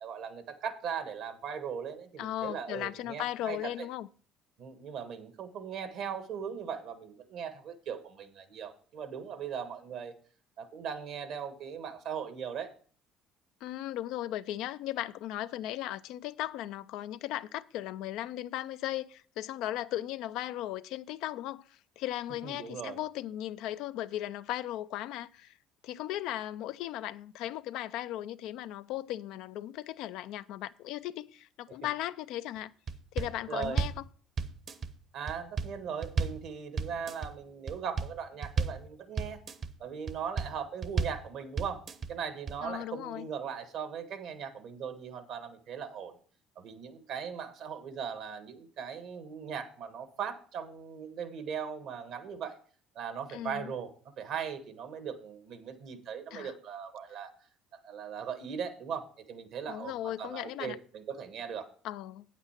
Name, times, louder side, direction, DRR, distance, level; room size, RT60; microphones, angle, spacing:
voice 1, 0.0-3.6 4.6-10.1 10.6-12.7 22.4-23.0 33.5-33.8 35.1-39.4 39.8-41.8 42.1-46.1 46.6-52.6 52.9-53.9 54.2-57.3 57.8-61.7, right 7 dB, 65° right, 1.4 m, -39 dB
voice 2, 2.2-4.1 13.6-25.6 25.8-32.7 33.1-34.0 42.6-43.3 53.3-53.7 56.3-56.5 59.7-60.8 61.8-62.2, left 13 dB, 70° left, 0.4 m, -37 dB
sound 1, 32.9-33.3 33.6-34.0 34.4-34.9 35.3-35.7 36.0-36.4 36.8-37.3 37.7-38.1 38.4-38.8 39.2-39.7 40.1-40.5 40.8-41.2 41.6-42.1 42.5-42.6, right 5 dB, 50° right, 1.0 m, -32 dB
8.8 x 8.2 x 4.4 m
supercardioid pair, 75°, 0 cm